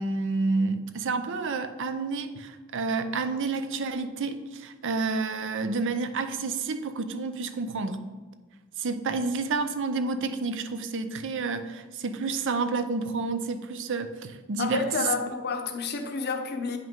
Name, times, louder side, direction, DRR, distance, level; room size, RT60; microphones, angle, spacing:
voice 1, 0.0-8.0 8.8-15.1, right 4 dB, 55° right, 0.6 m, -29 dB
voice 2, 14.6-16.8, left 4 dB, 50° left, 0.7 m, -30 dB
9.0 x 5.5 x 3.6 m
head